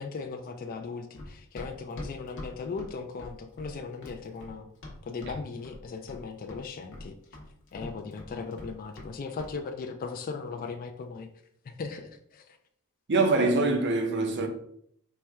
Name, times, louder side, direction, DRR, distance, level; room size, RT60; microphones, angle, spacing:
voice 1, 0.0-4.7 5.0-7.1 7.7-11.3 11.6-12.4, left 4 dB, 40° left, 0.3 m, -38 dB
Run, 1.2-5.4 5.6-6.2 6.5-9.1 9.4-9.6, left 1 dB, 55° left, 0.9 m, -43 dB
voice 2, 13.1-14.5, right 3 dB, 50° right, 0.6 m, -24 dB
4.3 x 2.2 x 3.4 m
head